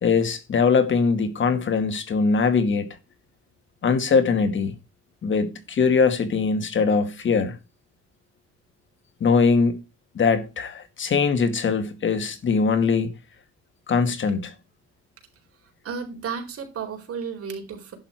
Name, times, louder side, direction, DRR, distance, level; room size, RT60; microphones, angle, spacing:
voice 1, 0.0-2.9 3.8-4.7 5.2-7.6 9.2-9.8 10.2-13.1 13.9-14.5, left 5 dB, 40° left, 2.1 m, -21 dB
voice 2, 15.6-18.0, right 6 dB, 50° right, 4.3 m, -33 dB
11.5 x 6.7 x 4.5 m
cardioid pair, 130°, 29 cm